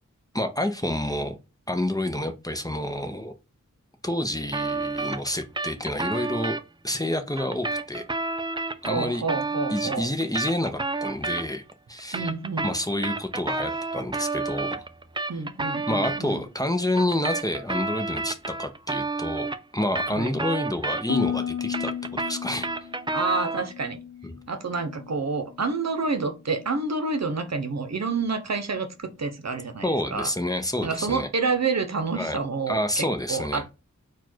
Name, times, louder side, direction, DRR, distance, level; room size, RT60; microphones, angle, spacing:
voice 1, 0.3-1.4 1.7-3.3 4.0-6.6 6.8-8.1 8.8-9.2 9.7-11.6 11.9-12.3 12.6-14.8 15.9-22.7 24.2-24.3 29.8-31.3 32.1-32.4 32.7-33.7, left 1 dB, 10° left, 0.7 m, -28 dB
sound 1, 4.5-6.6 7.4-11.7 12.0-16.2 17.0-21.3 21.6-23.7, right 3 dB, 15° right, 0.4 m, -30 dB
voice 2, 8.8-10.1 12.1-12.7 15.3-16.4 20.1-20.3 23.1-24.0 24.5-30.3 30.8-33.7, right 4 dB, 60° right, 0.8 m, -28 dB
Harp, 21.1-25.2 25.5-26.0 26.5-26.9, left 8 dB, 65° left, 0.8 m, -34 dB
4.4 x 2.5 x 4.4 m
wide cardioid pair, 80°, 30 cm